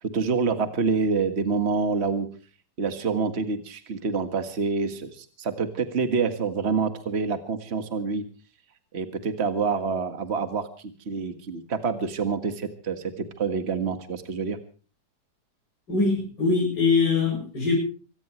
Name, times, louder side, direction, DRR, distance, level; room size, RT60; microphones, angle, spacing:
voice 1, 0.0-2.3 2.8-8.2 8.9-10.7 11.1-14.6, right 4 dB, 40° right, 9 dB, 1.9 m, -27 dB
voice 2, 15.9-17.7, left 4 dB, 90° left, -2 dB, 7.6 m, -22 dB
25.0 x 18.0 x 3.2 m, 0.38 s
omnidirectional pair, 1.8 m